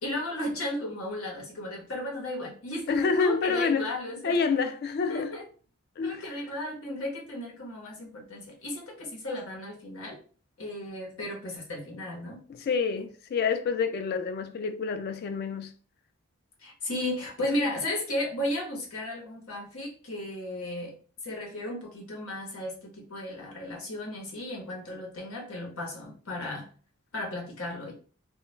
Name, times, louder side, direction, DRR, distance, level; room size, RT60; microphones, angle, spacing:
voice 1, 0.0-4.4 5.1-5.5 6.0-10.2 10.6-12.4 16.6-20.9 21.2-26.7 27.1-27.9, left 1 dB, 90° left, 1.0 m, -35 dB
voice 2, 2.9-3.9 4.2-5.3 6.0-6.2 12.5-15.7, left 5 dB, 50° left, 0.3 m, -28 dB
2.2 x 2.2 x 3.0 m
head